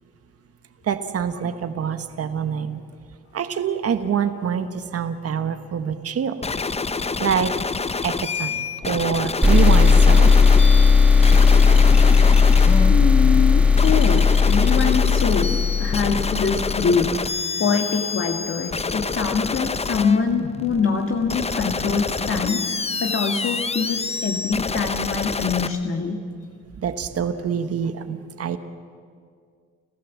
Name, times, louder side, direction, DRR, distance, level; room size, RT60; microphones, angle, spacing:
voice 1, 0.8-2.8 3.3-6.4 7.2-7.5 8.0-10.4 26.8-28.6, right 7 dB, 50° right, 9 dB, 1.4 m, -25 dB
sound 1, 6.4-25.7, left 4 dB, 20° left, 0.8 m, -28 dB
sound 2, 9.4-16.9, left 5 dB, 5° right, 2.0 m, -15 dB
voice 2, 12.9-26.2, left 5 dB, 45° left, 3 dB, 1.8 m, -24 dB
30.0 x 14.5 x 7.3 m, 2.1 s
cardioid pair, 90°, 30 cm